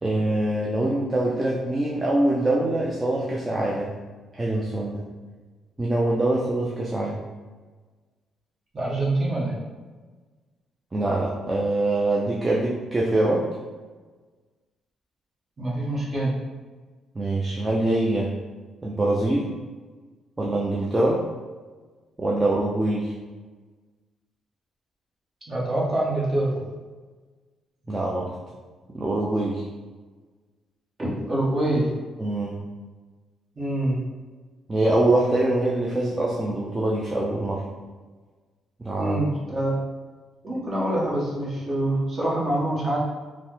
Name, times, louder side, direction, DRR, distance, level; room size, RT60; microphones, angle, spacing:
voice 1, 0.0-4.0 4.3-5.0 5.8-7.2 10.9-13.5 17.2-18.3 18.8-19.5 20.4-21.3 22.2-23.1 27.9-28.3 28.9-29.7 32.2-32.7 34.7-37.6 38.8-39.2, right 1 dB, 20° right, -3 dB, 0.4 m, -24 dB
voice 2, 8.7-9.6 15.6-16.3 25.5-26.5 31.0-31.9 33.5-34.0 39.0-39.7 40.4-43.0, right 1 dB, 35° right, -6 dB, 1.0 m, -25 dB
3.2 x 2.0 x 3.0 m, 1.4 s
cardioid pair, 90°, 0 cm